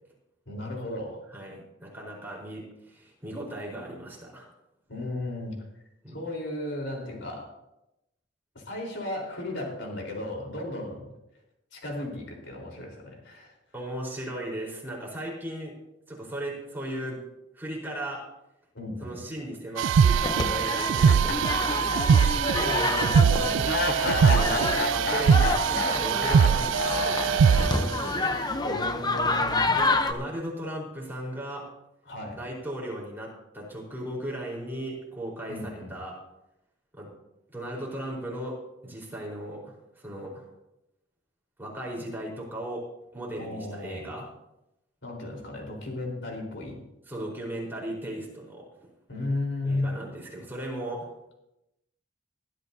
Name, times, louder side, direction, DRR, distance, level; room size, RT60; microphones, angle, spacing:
voice 1, 0.5-1.2 4.9-5.5 6.1-7.5 8.5-11.1 11.7-13.5 18.7-19.1 22.5-23.7 28.6-29.6 32.1-32.4 35.5-35.9 43.4-44.1 45.0-46.8 49.1-49.9, left 2 dB, 70° left, 0 dB, 4.0 m, -34 dB
voice 2, 1.3-4.5 6.0-6.2 13.7-15.8 16.1-17.2 17.5-18.2 19.0-22.3 24.1-27.9 29.7-31.7 32.4-36.2 36.9-37.1 37.5-40.5 41.6-42.9 43.1-44.3 47.1-48.7 49.6-51.1, right 1 dB, 10° right, -3 dB, 4.2 m, -37 dB
sound 1, 19.8-28.0, right 7 dB, 75° right, 0.3 m, -22 dB
sound 2, 20.2-30.1, left 2 dB, 20° left, 0.7 m, -29 dB
sound 3, 21.1-22.3 22.7-22.8 23.6-27.9, left 3 dB, 55° left, 1.0 m, -31 dB
20.5 x 12.5 x 2.8 m, 0.90 s
head